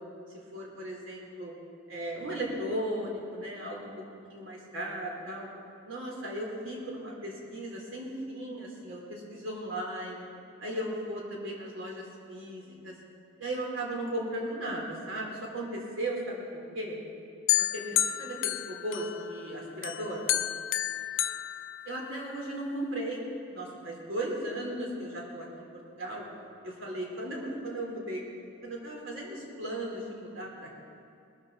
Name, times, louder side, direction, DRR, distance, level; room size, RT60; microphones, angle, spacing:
voice 1, 0.5-1.5 1.9-3.9 4.3-5.5 5.8-10.2 10.6-12.9 13.4-17.0 17.7-20.2 21.9-23.2 23.5-26.3 26.6-28.3 28.6-30.8, right 1 dB, 85° right, -2 dB, 3.6 m, -36 dB
sound 1, 17.5-19.4 19.8-22.4, left 12 dB, 85° left, 0.5 m, -30 dB
20.5 x 13.5 x 4.0 m, 2.5 s
head